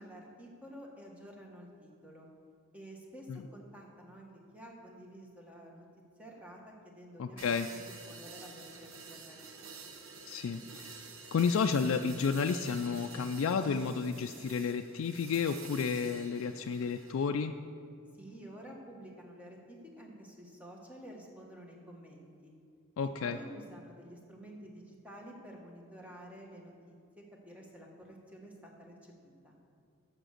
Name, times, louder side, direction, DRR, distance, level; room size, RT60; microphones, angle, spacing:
voice 1, 0.0-2.3 2.7-5.9 6.2-9.7 18.1-22.5 23.2-29.6, equal, 5° right, -1 dB, 1.3 m, -51 dB
voice 2, 7.2-7.7 10.3-10.9 11.3-17.5 23.0-23.4, left 5 dB, 75° left, 6 dB, 0.3 m, -31 dB
sound 1, 7.4-17.2, right 5 dB, 80° right, 0.9 m, -49 dB
7.6 x 7.5 x 6.4 m, 2.4 s
head